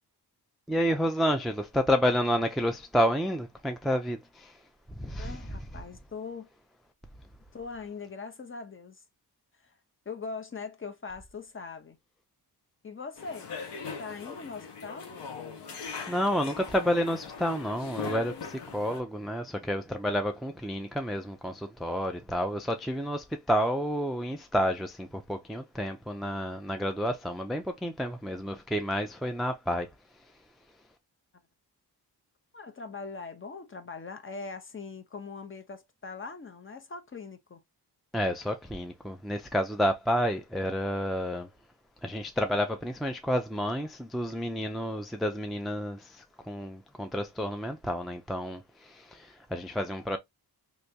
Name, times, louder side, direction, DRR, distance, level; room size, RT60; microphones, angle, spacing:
voice 1, 0.7-4.5 5.0-5.4 16.1-29.9 38.1-41.5 42.0-50.2, equal, ahead, 0.3 m, -30 dB
voice 2, 5.2-6.5 7.5-9.0 9.6-9.7 10.1-12.0 12.8-13.5 14.0-15.1 32.5-37.6, left 4 dB, 30° left, 0.7 m, -41 dB
sound 1, 13.2-19.0, left 5 dB, 90° left, 1.0 m, -40 dB
3.4 x 3.0 x 2.7 m
wide cardioid pair, 100°, 40 cm